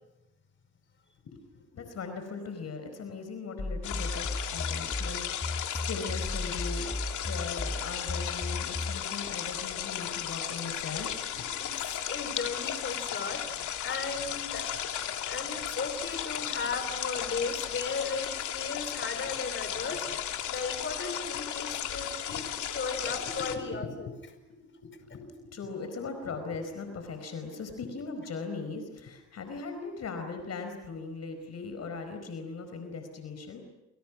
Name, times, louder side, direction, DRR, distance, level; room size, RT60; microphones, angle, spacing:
voice 1, 1.2-7.0 7.2-11.7 22.3-22.4 23.4-33.6, left 4 dB, 55° left, 7 dB, 4.8 m, -39 dB
sound 1, 3.6-9.1, left 2 dB, 10° left, 1.9 m, -35 dB
sound 2, 3.8-23.6, left 10 dB, 75° left, 2.9 m, -35 dB
voice 2, 12.1-14.9 15.2-24.1, left 4 dB, 40° left, 7 dB, 5.2 m, -36 dB
29.0 x 28.0 x 6.2 m, 0.95 s
cardioid pair, 90°, 30 cm